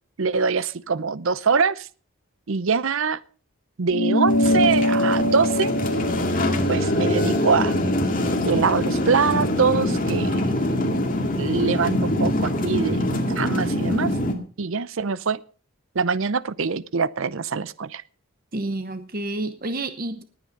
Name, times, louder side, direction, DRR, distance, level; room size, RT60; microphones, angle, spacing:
voice 1, 0.2-1.9 2.5-3.2 3.8-5.7 6.7-7.8 8.4-10.7 11.3-14.1 14.6-15.4 15.9-18.0, right 5 dB, 60° right, 18 dB, 0.6 m, -24 dB
sound 1, 3.9-8.7, left 1 dB, 80° left, 2.0 m, -25 dB
sound 2, 4.3-14.3, left 1 dB, 40° left, 2.1 m, -24 dB
voice 2, 18.5-20.2, right 2 dB, 40° right, 10 dB, 1.0 m, -29 dB
19.0 x 8.9 x 5.2 m, 0.41 s
head